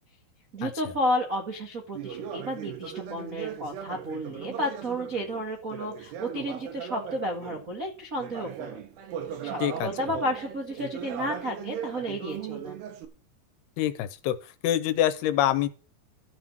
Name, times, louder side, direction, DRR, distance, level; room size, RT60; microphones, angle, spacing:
voice 1, 0.5-8.8 9.4-12.8, equal, 45° right, 0 dB, 1.0 m, -32 dB
Conversation, 1.9-7.7 8.1-13.0, right 9 dB, 75° right, 3.6 m, -38 dB
voice 2, 13.8-14.4 14.6-15.7, left 12 dB, 80° left, 13 dB, 2.7 m, -25 dB
13.5 x 6.2 x 6.4 m, 0.35 s
omnidirectional pair, 4.9 m